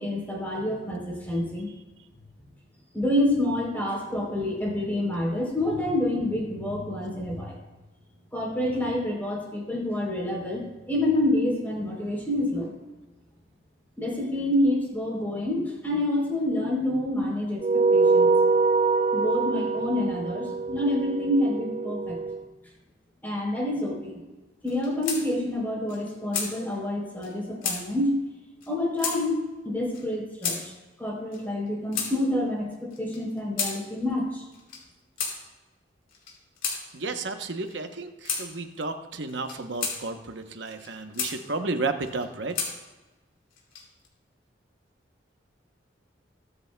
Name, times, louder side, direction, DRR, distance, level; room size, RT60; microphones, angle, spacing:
voice 1, 0.0-1.7 2.9-7.6 8.3-12.7 14.0-18.3 19.1-22.2 23.2-24.2 24.6-28.2 28.7-29.4 29.6-30.7 31.0-34.4, left 1 dB, 10° left, -3 dB, 3.4 m, -27 dB
sound 1, 17.6-22.4, right 4 dB, 30° right, 0.4 m, -24 dB
sound 2, 24.7-25.2 25.5-25.6 25.9-26.5 27.2-27.3 27.6-27.8 28.6-28.7 29.0-29.2 29.9-30.0 30.4-30.6 31.3-32.1 32.9-33.7 34.5-34.8 35.2-35.3 36.1-36.8 37.6-37.8 38.2-38.4 39.3-40.0 40.6-41.3 42.0-42.7 43.5-44.1, left 5 dB, 90° left, 2.9 m, -31 dB
voice 2, 36.9-42.6, right 3 dB, 70° right, 6 dB, 0.9 m, -32 dB
22.0 x 8.1 x 2.2 m, 1.2 s
head